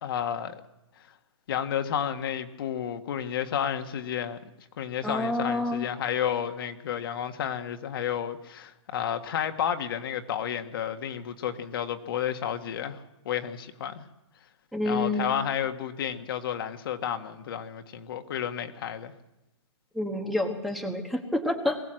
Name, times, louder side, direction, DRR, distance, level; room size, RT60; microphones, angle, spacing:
voice 1, 0.0-0.5 1.5-4.4 4.8-14.0 14.8-19.1, left 9 dB, 45° left, 7 dB, 1.6 m, -31 dB
voice 2, 5.0-5.9 14.7-15.3 19.9-21.8, left 1 dB, ahead, 4 dB, 1.3 m, -28 dB
21.5 x 17.5 x 7.7 m, 0.94 s
hypercardioid pair, 160°, 16 cm